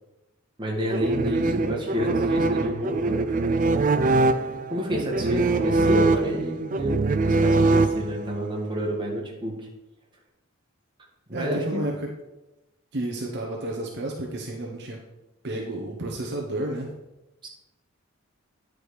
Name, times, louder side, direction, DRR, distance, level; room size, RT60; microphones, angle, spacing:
voice 1, 0.6-3.4 4.7-9.7 11.3-11.8 17.4-17.5, equal, 25° right, -2 dB, 1.9 m, -29 dB
sound 1, 0.9-8.4, right 3 dB, 40° right, 0.4 m, -23 dB
voice 2, 11.3-12.1 12.9-15.0 15.4-16.9, right 1 dB, 55° right, 0 dB, 1.0 m, -31 dB
9.6 x 5.0 x 5.0 m, 0.99 s
head